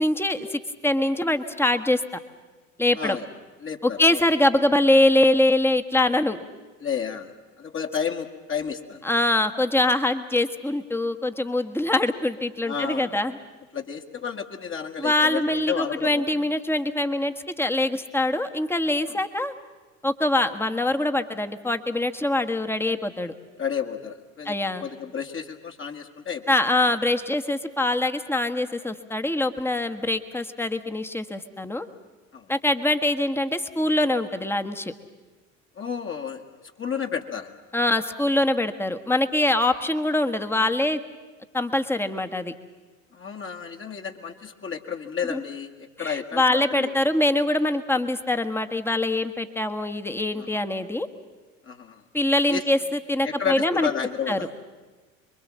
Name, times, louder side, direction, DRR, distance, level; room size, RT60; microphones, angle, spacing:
voice 1, 0.0-2.0 2.8-3.2 3.8-6.4 9.0-13.4 15.0-19.5 20.0-23.3 24.4-24.9 26.5-31.9 32.5-34.9 37.7-41.0 41.5-42.5 45.3-45.4 46.0-51.1 52.1-52.8 53.1-53.9 54.3-54.4, left 1 dB, 5° left, 7 dB, 1.5 m, -23 dB
voice 2, 3.0-3.3 3.6-4.3 6.8-9.0 12.6-13.1 13.7-16.4 19.1-19.2 23.6-26.4 32.3-32.5 35.8-36.4 36.8-37.5 43.1-47.0 50.4-50.7 51.6-52.0 52.5-52.6 53.2-54.7, left 7 dB, 30° left, 3 dB, 2.0 m, -31 dB
26.5 x 23.0 x 7.5 m, 1.3 s
figure-of-eight pair, 70°, 40 cm